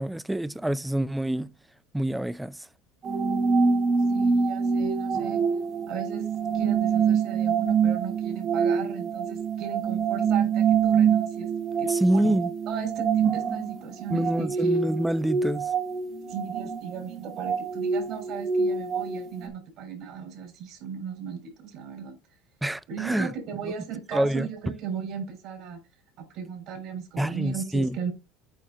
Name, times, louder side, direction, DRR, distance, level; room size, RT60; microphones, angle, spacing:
voice 1, 0.0-1.5 1.9-2.7 11.9-12.5 14.1-15.7 22.6-23.3 23.6-23.7 24.1-24.5 27.2-28.0, right 1 dB, 5° right, 0.4 m, -26 dB
sound 1, 3.0-19.5, right 6 dB, 45° right, 1.4 m, -26 dB
voice 2, 4.1-5.4 5.9-6.3 6.5-11.5 11.8-12.3 12.7-14.7 16.3-22.2 22.9-25.8 26.2-28.1, right 7 dB, 60° right, 3.6 m, -36 dB
8.8 x 3.5 x 3.7 m
supercardioid pair, 110°, 0 cm